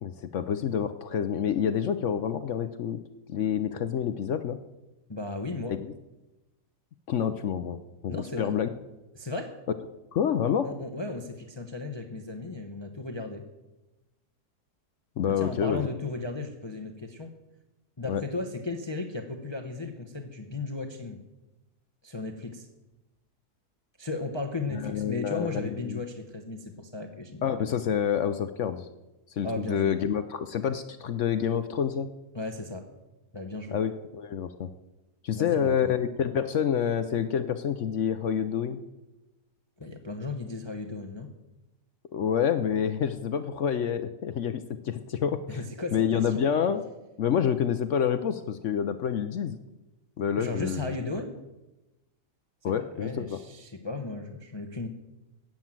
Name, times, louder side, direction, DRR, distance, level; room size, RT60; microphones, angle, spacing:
voice 1, 0.0-3.0 3.3-4.6 5.7-5.9 7.1-8.7 10.1-10.7 15.2-15.9 18.1-18.2 24.7-26.0 27.4-28.9 29.3-32.1 33.7-34.7 35.2-38.8 42.1-45.6 45.9-46.8 47.2-49.6 50.2-50.9 52.6-53.4, left 8 dB, 60° left, 11 dB, 0.8 m, -28 dB
voice 2, 5.1-5.8 8.1-8.5 9.1-9.6 10.6-13.4 15.2-17.3 18.0-21.2 22.0-22.7 24.0-27.5 29.4-30.1 32.3-32.9 33.3-33.8 35.3-35.9 39.8-41.3 45.5-46.5 50.4-51.4 52.6-54.9, left 3 dB, 20° left, 5 dB, 0.8 m, -35 dB
13.5 x 9.1 x 7.4 m, 1.0 s
omnidirectional pair, 1.7 m